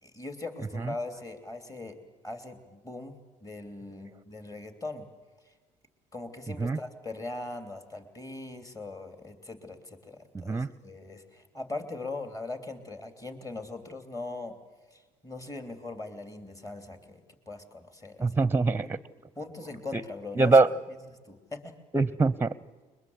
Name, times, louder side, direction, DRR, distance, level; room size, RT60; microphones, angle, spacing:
voice 1, 0.0-2.0 2.2-5.1 6.1-14.5 14.9-18.3 18.8-19.0 19.4-20.6 21.3-21.7, left 2 dB, 20° left, 7 dB, 3.1 m, -40 dB
voice 2, 10.3-10.7 18.2-19.0 19.9-20.0 20.4-20.7 21.9-22.5, right 3 dB, 15° right, 19 dB, 0.8 m, -23 dB
21.5 x 21.5 x 8.0 m, 1.3 s
supercardioid pair, 70°, 16 cm